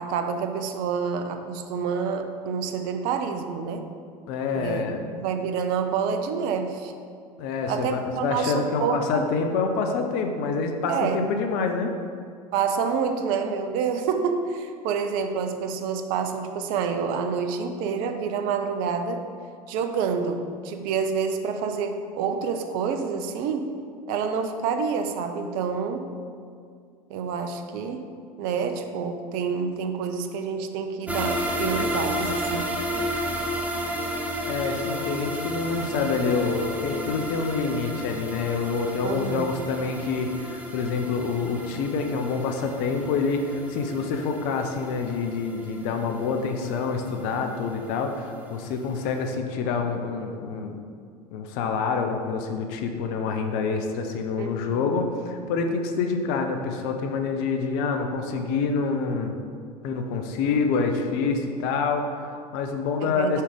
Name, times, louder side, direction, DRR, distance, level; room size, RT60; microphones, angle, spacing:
voice 1, 0.0-3.8 4.5-6.9 7.7-9.2 10.9-11.2 12.5-19.2 19.7-23.8 24.1-26.0 27.1-28.1 28.4-32.7 39.0-39.5 54.4-54.8 63.0-63.4, right 6 dB, 45° right, 7 dB, 0.6 m, -28 dB
voice 2, 4.3-5.0 7.4-11.9 34.5-50.8 51.3-59.3 59.8-63.4, left 4 dB, 50° left, 4 dB, 0.7 m, -27 dB
sound 1, 31.1-48.1 48.5-48.6 49.0-49.1, equal, 5° right, 0.7 m, -32 dB
5.5 x 4.8 x 3.6 m, 2.2 s
figure-of-eight pair, 75°, 20 cm